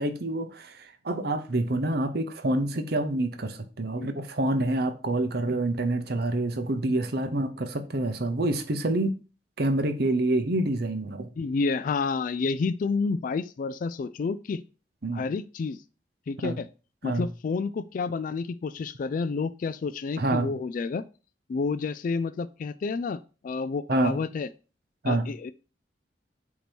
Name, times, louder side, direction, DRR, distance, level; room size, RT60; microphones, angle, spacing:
voice 1, 0.0-9.2 9.6-11.3 15.0-15.2 16.4-16.6 17.0-17.3 20.2-20.5 23.9-24.2 25.0-25.3, right 2 dB, 60° right, 0.9 m, -27 dB
voice 2, 11.4-14.6 15.1-15.8 16.3-16.7 17.0-21.0 21.5-24.5 25.0-25.5, left 4 dB, 50° left, 0.3 m, -30 dB
8.3 x 3.0 x 4.4 m
head